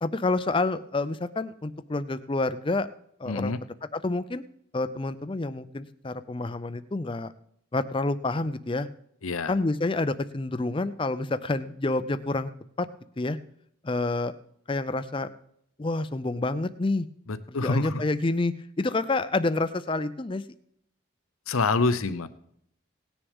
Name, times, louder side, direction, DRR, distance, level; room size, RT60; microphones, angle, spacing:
voice 1, 0.0-2.9 3.2-3.5 3.9-4.4 4.7-7.3 7.7-8.9 9.5-12.5 12.8-12.9 13.2-13.4 13.8-14.3 14.7-15.3 15.8-17.1 17.5-20.4, left 2 dB, 25° left, 13 dB, 0.5 m, -28 dB
voice 2, 3.3-3.6 9.2-9.5 17.3-18.0 21.5-22.3, left 3 dB, 85° left, 12 dB, 0.8 m, -26 dB
18.0 x 10.0 x 3.6 m, 0.70 s
head